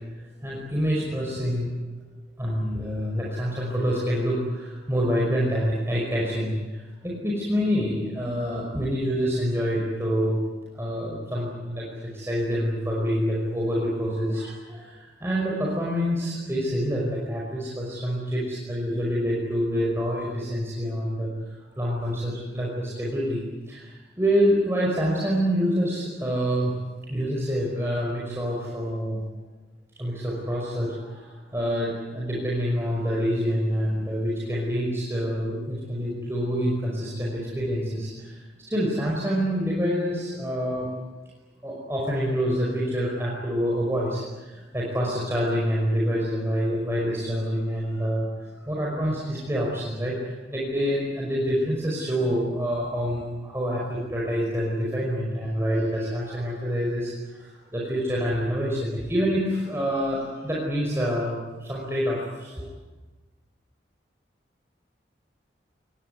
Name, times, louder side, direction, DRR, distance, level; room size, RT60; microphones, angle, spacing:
voice 1, 0.4-10.4 10.7-21.3 21.8-26.7 27.1-29.2 30.0-40.9 41.6-48.3 48.6-62.7, equal, 15° right, -5 dB, 5.4 m, -27 dB
27.5 x 19.5 x 9.7 m, 1.2 s
head